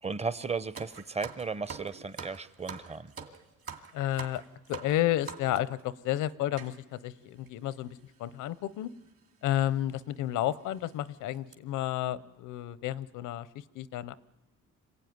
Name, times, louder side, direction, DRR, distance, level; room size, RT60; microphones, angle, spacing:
voice 1, 0.0-3.1, right 4 dB, 20° right, 16 dB, 0.7 m, -35 dB
sound 1, 0.7-5.8 6.6-6.7 7.5-7.6 7.7-7.9 8.9-9.1 9.6-9.7 10.2-10.3 10.7-11.0 11.3-11.5, right 6 dB, 50° right, 2.5 m, -44 dB
voice 2, 3.9-4.4 4.7-8.9 9.4-13.5 13.7-14.1, left 13 dB, 90° left, 17 dB, 0.7 m, -31 dB
25.5 x 16.0 x 9.4 m, 1.2 s
cardioid pair, 90°, 30 cm